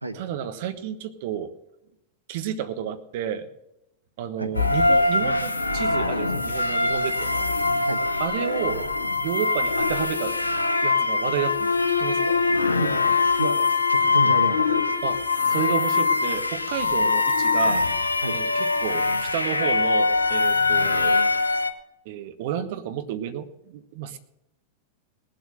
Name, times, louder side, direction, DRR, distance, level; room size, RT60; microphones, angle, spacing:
voice 1, 0.1-1.5 2.3-3.5 4.2-7.4 8.2-8.8 9.2-10.4 10.8-12.4 15.0-17.8 18.3-21.3 22.0-24.2, right 9 dB, 50° right, 10 dB, 1.2 m, -31 dB
sound 1, 4.5-21.7, left 3 dB, 80° left, 1.0 m, -23 dB
voice 2, 13.4-14.9 18.2-18.3, right 2 dB, 80° right, 10 dB, 1.2 m, -29 dB
19.5 x 7.7 x 7.6 m, 0.85 s
figure-of-eight pair, 90°, 0 cm